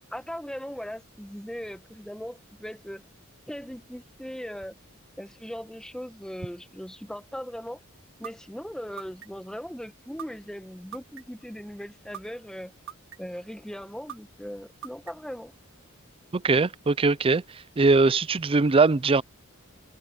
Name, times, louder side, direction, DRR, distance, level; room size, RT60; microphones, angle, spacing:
voice 1, 0.1-3.0 3.4-4.8 5.2-7.8 8.2-12.7 13.2-15.5, equal, 5° left, 1.2 m, -39 dB
sound 1, 8.2-8.3 9.0-9.5 10.2-10.3 10.9-11.4 12.1-12.2 12.9-13.4 14.1-14.2 14.8-15.3, right 9 dB, 65° right, 1.6 m, -40 dB
voice 2, 16.3-19.2, right 3 dB, 25° right, 0.5 m, -21 dB
head